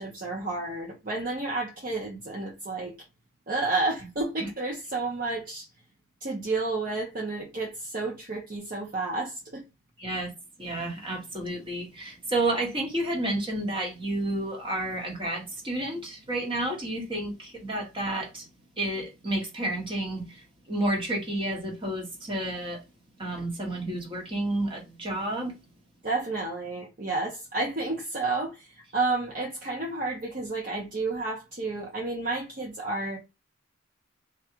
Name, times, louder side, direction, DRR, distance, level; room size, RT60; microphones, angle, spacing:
voice 1, 0.0-2.9 3.5-5.7 6.2-9.6 26.0-33.2, right 3 dB, 40° right, 0.8 m, -31 dB
voice 2, 10.0-10.3 10.6-18.5 18.8-22.8 23.2-25.5, right 1 dB, 25° right, 1.2 m, -31 dB
3.7 x 2.3 x 4.4 m
head